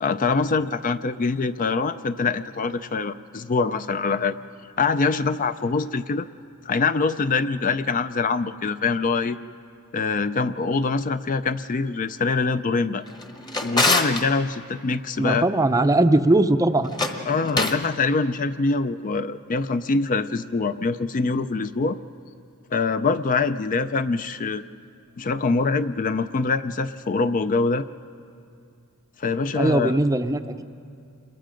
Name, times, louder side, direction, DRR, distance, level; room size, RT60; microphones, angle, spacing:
voice 1, 0.0-4.4 4.8-6.3 6.7-9.4 9.9-13.0 13.6-15.5 17.3-22.0 22.7-24.6 25.2-27.9 29.2-29.9, left 4 dB, 35° left, 12 dB, 0.4 m, -24 dB
Drawer open or close, 13.1-14.2 16.8-17.9, left 2 dB, 20° left, 1.1 m, -24 dB
voice 2, 15.2-17.0 29.6-30.6, right 2 dB, 15° right, 9 dB, 0.5 m, -20 dB
27.5 x 22.0 x 5.1 m, 2.5 s
head